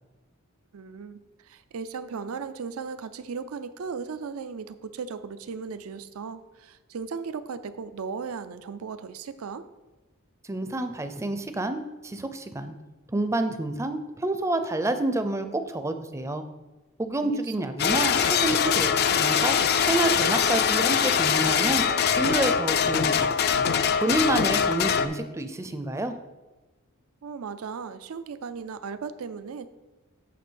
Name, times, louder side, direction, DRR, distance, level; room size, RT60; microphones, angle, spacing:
voice 1, 0.7-9.6 17.2-17.7 27.2-29.7, right 5 dB, 80° right, 12 dB, 0.5 m, -36 dB
voice 2, 10.5-12.7 13.1-16.4 17.0-19.6 19.8-21.8 22.1-23.4 24.0-26.1, right 2 dB, 15° right, 8 dB, 0.5 m, -28 dB
sound 1, 17.8-25.1, left 7 dB, 50° left, 0.4 m, -23 dB
8.5 x 3.3 x 6.3 m, 1.1 s
head